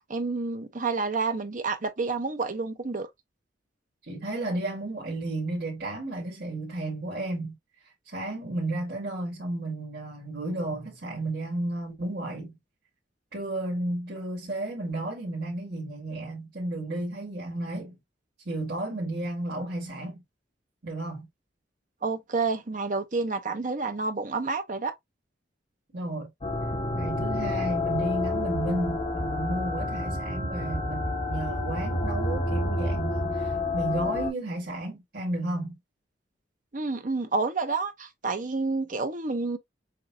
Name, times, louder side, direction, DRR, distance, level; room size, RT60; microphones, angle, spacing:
voice 1, 0.1-3.1 22.0-24.9 36.7-39.6, right 3 dB, 45° right, 0.8 m, -29 dB
voice 2, 4.1-7.6 8.1-12.5 13.3-18.0 18.5-20.2 20.8-21.3 25.9-26.3 26.9-35.8, right 2 dB, 60° right, 2.0 m, -33 dB
sound 1, 26.4-34.3, left 2 dB, 35° left, 1.9 m, -29 dB
6.7 x 2.5 x 2.7 m
head